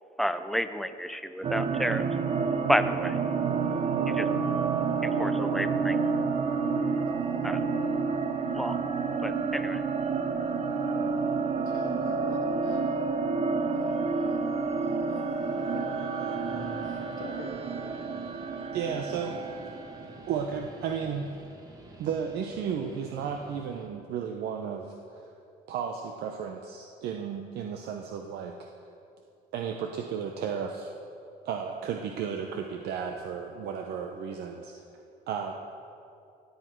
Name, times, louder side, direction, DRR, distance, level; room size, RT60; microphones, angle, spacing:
voice 1, 0.2-2.1 2.7-3.2 4.1-4.3 5.0-6.0 7.4-7.6 8.5-8.7 9.2-9.8, equal, ahead, 11 dB, 0.5 m, -30 dB
sound 1, 1.4-20.4, right 5 dB, 35° right, 0.7 m, -29 dB
voice 2, 11.5-13.0 13.2-13.4 13.7-14.4 14.8-15.8 16.8-17.5, left 4 dB, 65° left, -5 dB, 1.7 m, -46 dB
Guitar, 15.3-23.9, right 1 dB, 20° right, 1.5 m, -49 dB
voice 3, 18.7-19.4 20.3-21.3 22.0-25.3 25.7-28.6 29.5-30.9 31.4-34.7 35.3-35.5, right 7 dB, 75° right, 3 dB, 0.7 m, -33 dB
16.0 x 8.1 x 4.5 m, 2.6 s
cardioid pair, 110°, 17 cm